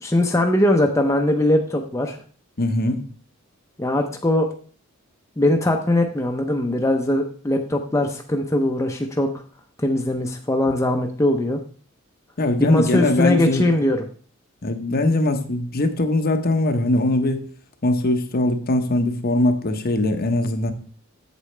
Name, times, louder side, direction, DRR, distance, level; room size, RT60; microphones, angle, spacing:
voice 1, 0.0-2.2 3.8-4.5 5.4-9.3 9.8-11.6 12.6-14.0, left 1 dB, 15° left, 0.6 m, -20 dB
voice 2, 2.6-3.0 12.4-13.6 14.6-17.4 17.8-20.7, left 2 dB, 45° left, 0.9 m, -21 dB
8.1 x 7.5 x 3.2 m
head